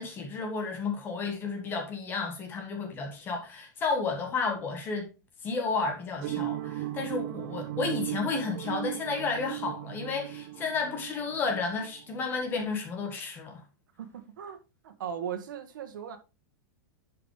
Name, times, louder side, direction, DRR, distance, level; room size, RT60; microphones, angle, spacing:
voice 1, 0.0-5.1 5.4-13.6, left 4 dB, 20° left, 1.4 m, -32 dB
sound 1, 6.2-12.4, right 14 dB, 40° right, 0.8 m, -37 dB
voice 2, 14.0-14.6 14.8-16.2, right 8 dB, 80° right, 1.5 m, -38 dB
11.0 x 5.0 x 3.2 m
supercardioid pair, 165°, 11 cm